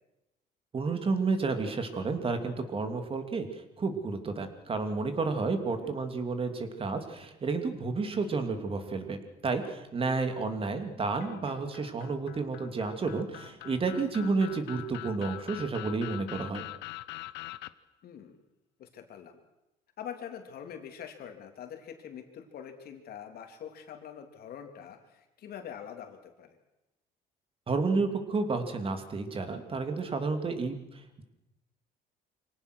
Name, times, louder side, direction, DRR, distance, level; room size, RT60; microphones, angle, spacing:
voice 1, 0.7-16.6 27.7-31.2, right 4 dB, 35° right, 7 dB, 2.8 m, -31 dB
sound 1, 11.2-17.7, left 18 dB, 85° left, 0.8 m, -44 dB
voice 2, 18.0-18.4 18.8-19.4 20.0-26.6, left 8 dB, 65° left, 5 dB, 3.1 m, -44 dB
24.5 x 18.0 x 6.4 m, 0.93 s
cardioid pair, 110°, 17 cm